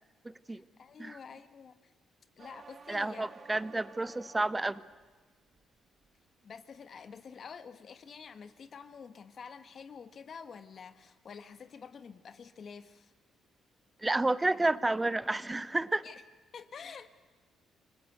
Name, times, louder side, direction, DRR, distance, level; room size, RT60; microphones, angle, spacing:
voice 1, 0.5-1.9 2.4-3.3 6.4-13.1 16.0-16.2 16.5-17.1, left 6 dB, 50° left, 11 dB, 1.5 m, -48 dB
sound 1, 2.4-5.1 5.5-6.1, right 5 dB, 40° right, 1.6 m, -53 dB
voice 2, 2.9-4.8 14.0-16.0, right 2 dB, 15° right, 17 dB, 0.9 m, -30 dB
29.5 x 21.0 x 8.1 m, 1.4 s
cardioid pair, 90°, 0 cm